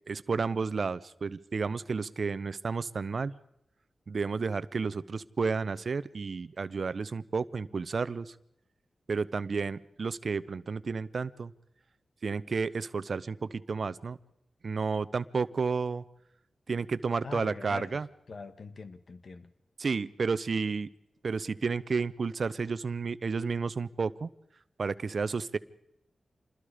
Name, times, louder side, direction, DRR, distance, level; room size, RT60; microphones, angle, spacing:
voice 1, 0.1-3.3 4.1-8.3 9.1-11.5 12.2-14.2 14.6-16.0 16.7-18.1 19.8-20.9 21.2-24.3 24.8-25.6, right 4 dB, 65° right, 0.7 m, -31 dB
voice 2, 17.2-18.0 18.3-19.5, left 4 dB, 70° left, 1.5 m, -43 dB
27.0 x 21.0 x 5.0 m
cardioid pair, 40°, 0 cm